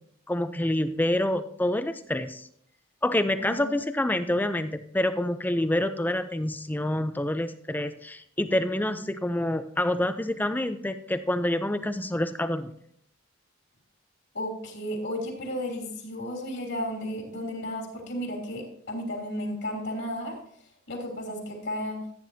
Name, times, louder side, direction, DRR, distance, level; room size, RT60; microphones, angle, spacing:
voice 1, 0.3-2.5 3.0-12.7, left 1 dB, 10° left, 10 dB, 0.4 m, -27 dB
voice 2, 3.4-3.7 14.3-20.4 20.9-22.0, equal, 65° left, 0 dB, 3.0 m, -33 dB
14.5 x 9.2 x 2.7 m, 0.64 s
head